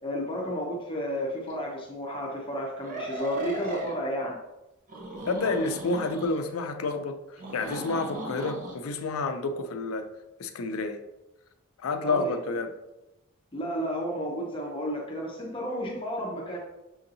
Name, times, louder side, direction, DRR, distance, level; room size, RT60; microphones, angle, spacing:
voice 1, 0.0-4.4 12.0-12.4 13.5-16.6, equal, 25° left, 0.6 m, -32 dB
sound 1, 1.5-1.6 2.8-4.0 4.9-6.4 7.4-8.7, right 2 dB, 40° right, 0.8 m, -37 dB
voice 2, 5.3-7.2 7.5-10.1 10.4-11.0 11.8-12.7, left 3 dB, 70° left, 0.4 m, -29 dB
6.3 x 2.7 x 2.6 m
head